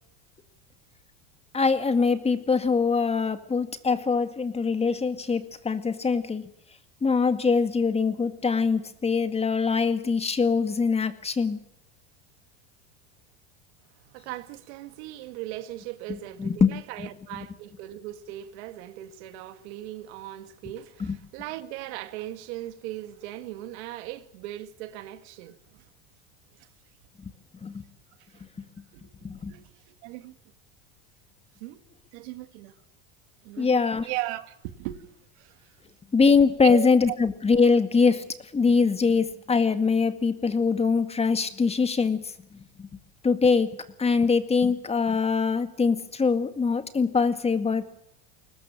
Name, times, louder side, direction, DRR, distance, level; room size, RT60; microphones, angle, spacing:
voice 1, 1.5-6.5 7.0-11.6 16.4-17.1 17.4-17.5 21.0-21.2 27.6-27.8 29.2-29.5 33.6-34.1 36.1-38.3 38.5-42.3 42.8-42.9 43.2-47.9, left 5 dB, 20° left, 2.0 m, -23 dB
voice 2, 14.1-25.8 26.6-26.7 28.2-28.4 28.9-29.1 29.5-30.4 31.6-31.8 32.1-32.7 33.4-35.0 35.4-35.7 36.6-37.2, right 15 dB, 75° right, 2.1 m, -38 dB
22.5 x 19.5 x 7.4 m
supercardioid pair, 115°, 33 cm